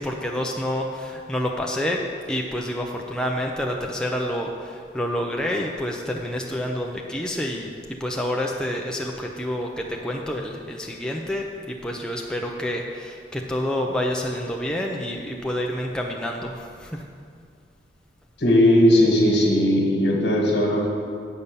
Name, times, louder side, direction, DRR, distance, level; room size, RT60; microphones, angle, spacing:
voice 1, 0.0-2.0 2.3-7.7 8.0-17.0, left 1 dB, 5° left, 0 dB, 0.5 m, -28 dB
voice 2, 18.4-20.9, left 1 dB, 65° left, 0 dB, 1.7 m, -18 dB
8.8 x 5.4 x 6.8 m, 2.2 s
head